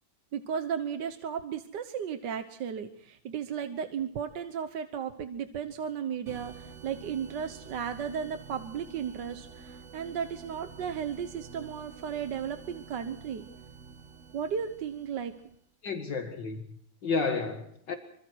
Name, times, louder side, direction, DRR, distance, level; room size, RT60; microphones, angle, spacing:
voice 1, 0.3-13.4 14.3-15.3, right 7 dB, 65° right, 1.7 m, -35 dB
sound 1, 6.3-15.6, right 6 dB, 45° right, 1.3 m, -49 dB
voice 2, 15.8-17.9, left 4 dB, 70° left, 2.4 m, -32 dB
26.5 x 26.0 x 4.6 m
omnidirectional pair, 2.1 m